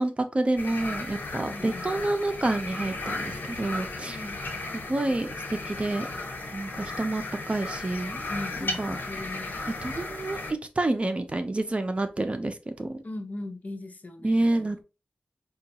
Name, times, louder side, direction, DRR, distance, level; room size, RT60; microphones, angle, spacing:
voice 1, 0.0-4.2 4.7-6.1 6.5-8.2 8.8-9.0 9.8-10.4 10.8-13.0 14.2-14.8, right 2 dB, 35° right, 0.6 m, -28 dB
sound 1, 0.6-10.5, left 2 dB, 85° left, 1.2 m, -35 dB
voice 2, 1.4-1.9 4.1-4.4 8.3-9.5 13.0-14.8, left 2 dB, 55° left, 0.6 m, -38 dB
5.0 x 2.3 x 2.8 m
wide cardioid pair, 75°, 3 cm